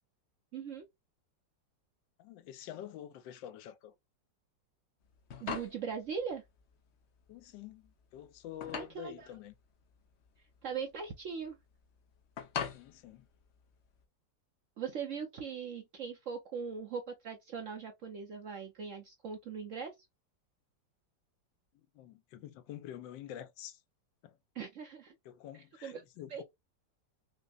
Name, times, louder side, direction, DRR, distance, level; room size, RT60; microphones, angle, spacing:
voice 1, 0.5-0.8 5.4-6.4 8.7-9.3 10.6-11.6 14.8-19.9 24.5-25.1 25.8-26.0 26.3-26.4, right 6 dB, 65° right, 0.8 m, -40 dB
voice 2, 2.2-3.9 7.3-9.5 12.7-13.3 21.7-23.8 24.2-24.4 25.2-26.4, left 11 dB, 85° left, 1.3 m, -47 dB
sound 1, 5.0-14.0, left 7 dB, 65° left, 0.6 m, -44 dB
5.2 x 2.1 x 2.3 m
omnidirectional pair, 1.9 m